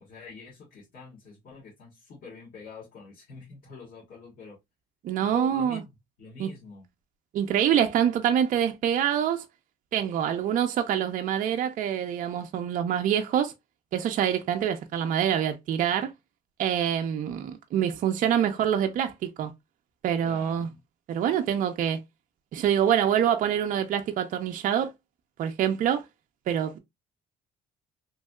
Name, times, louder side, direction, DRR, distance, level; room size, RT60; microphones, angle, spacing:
voice 1, 0.0-4.6 5.2-5.9 6.2-6.9 20.2-20.8, left 4 dB, 60° left, 1.5 m, -45 dB
voice 2, 5.0-5.8 6.4-6.5 7.3-9.4 9.9-13.5 13.9-16.1 16.6-19.5 20.0-20.7 21.1-22.0 22.5-24.9 25.4-26.0 26.5-26.8, right 9 dB, 50° right, 0.4 m, -25 dB
3.1 x 2.7 x 2.2 m
cardioid pair, 110°, 17 cm